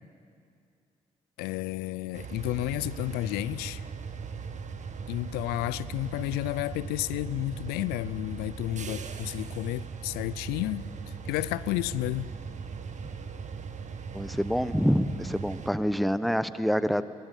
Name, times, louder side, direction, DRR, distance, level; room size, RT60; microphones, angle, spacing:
voice 1, 1.4-3.8 5.1-12.3, left 17 dB, 75° left, 18 dB, 0.5 m, -32 dB
sound 1, 2.1-15.7, right 5 dB, 50° right, 1.7 m, -39 dB
voice 2, 14.1-17.0, equal, ahead, 14 dB, 1.0 m, -26 dB
21.5 x 17.5 x 9.2 m, 2.4 s
hypercardioid pair, 40°, 16 cm